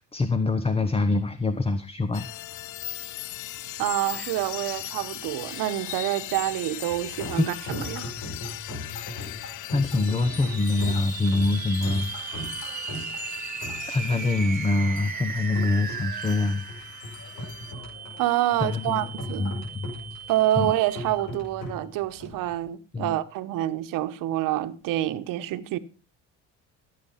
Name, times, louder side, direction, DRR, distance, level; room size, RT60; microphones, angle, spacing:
voice 1, 0.0-2.3 8.8-9.1 9.7-12.1 13.9-16.6 18.6-19.1 19.4-19.9 20.6-20.7 22.9-23.2, left 3 dB, 15° left, 1.0 m, -25 dB
sound 1, 2.1-17.7, left 13 dB, 65° left, 0.9 m, -39 dB
voice 2, 3.8-8.1 18.2-19.6 20.3-25.8, right 14 dB, 75° right, 1.3 m, -27 dB
sound 2, 6.9-22.6, left 2 dB, 85° left, 5.6 m, -39 dB
sound 3, 9.8-21.4, right 7 dB, 25° right, 0.7 m, -37 dB
15.5 x 8.6 x 5.8 m
cardioid pair, 100°, 33 cm